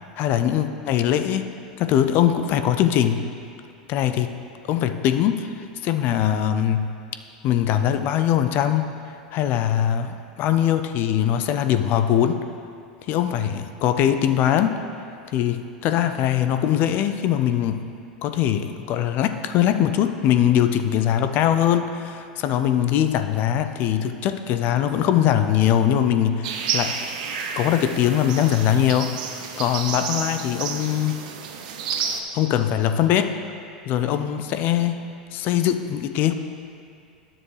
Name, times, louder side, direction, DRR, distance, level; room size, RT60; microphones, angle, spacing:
voice 1, 0.2-1.5 1.8-3.2 3.9-4.3 4.7-5.6 5.8-6.9 7.4-8.9 9.3-12.4 13.1-14.8 15.3-17.9 18.2-27.0 27.6-29.2 29.6-31.2 32.3-33.4 33.9-36.3, left 10 dB, 50° left, 9 dB, 0.5 m, -21 dB
sound 1, 26.4-32.2, right 6 dB, 65° right, 0.7 m, -30 dB
10.5 x 7.1 x 3.3 m, 2.5 s
hypercardioid pair, 85°, 4 cm